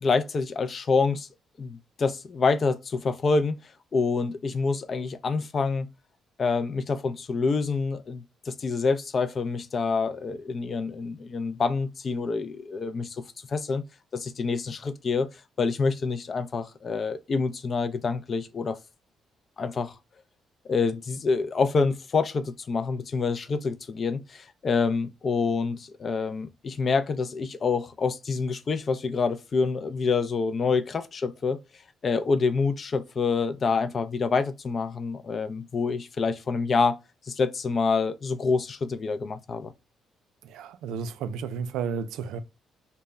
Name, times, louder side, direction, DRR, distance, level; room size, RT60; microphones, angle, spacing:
voice 1, 0.0-1.3 1.6-3.6 3.9-5.9 6.4-13.8 14.1-15.3 15.6-18.8 19.6-19.9 20.7-31.6 32.0-37.0 37.3-39.7, left 4 dB, 45° left, 0.3 m, -27 dB
voice 2, 40.4-42.4, right 6 dB, 90° right, 0.3 m, -32 dB
2.1 x 2.0 x 3.4 m
cardioid pair, 90°, 0 cm